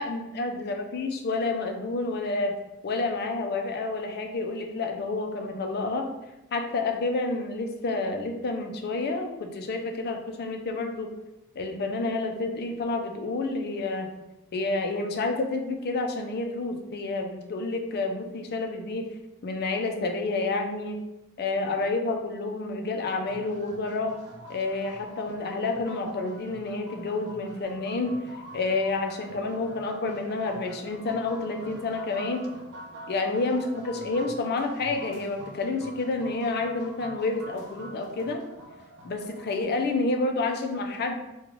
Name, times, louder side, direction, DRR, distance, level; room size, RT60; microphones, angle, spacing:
voice 1, 0.0-2.5 2.8-6.1 6.5-11.1 11.6-14.1 14.5-19.1 19.4-21.0 21.4-24.2 24.5-28.1 28.5-32.5 33.1-38.4 39.0-41.2, left 3 dB, 50° left, 3 dB, 0.5 m, -29 dB
sound 1, 23.3-39.6, right 1 dB, 55° right, 0.6 m, -46 dB
3.1 x 2.3 x 3.7 m, 0.95 s
head